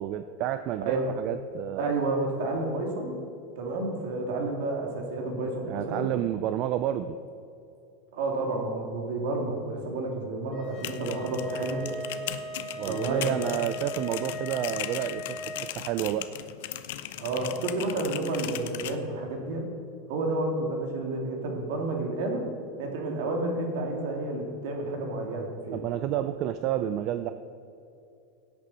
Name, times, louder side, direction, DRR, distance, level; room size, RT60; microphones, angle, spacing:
voice 1, 0.0-1.9 5.6-7.2 12.8-15.4 15.7-16.3 25.7-27.3, right 11 dB, 35° right, 11 dB, 0.3 m, -30 dB
voice 2, 0.8-1.1 1.8-3.1 3.6-6.1 8.1-11.8 12.8-13.4 17.2-19.7 20.1-22.5 22.8-25.8, right 2 dB, 60° right, 2 dB, 2.4 m, -30 dB
sound 1, 10.5-15.7, equal, 20° left, 1.2 m, -38 dB
sound 2, 10.6-19.0, left 13 dB, 60° left, 0.6 m, -38 dB
16.5 x 8.5 x 4.1 m, 2.7 s
supercardioid pair, 170°, 0 cm